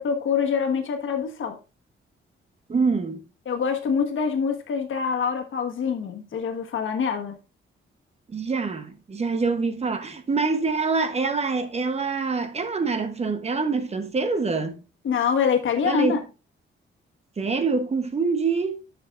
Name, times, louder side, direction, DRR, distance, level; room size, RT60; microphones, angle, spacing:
voice 1, 0.0-1.6 3.5-7.4 15.0-16.2, left 6 dB, 70° left, 1.3 m, -25 dB
voice 2, 2.7-3.2 8.3-14.8 15.8-16.2 17.4-18.8, right 4 dB, 30° right, 0.8 m, -25 dB
11.5 x 6.7 x 2.4 m
wide cardioid pair, 160°, 21 cm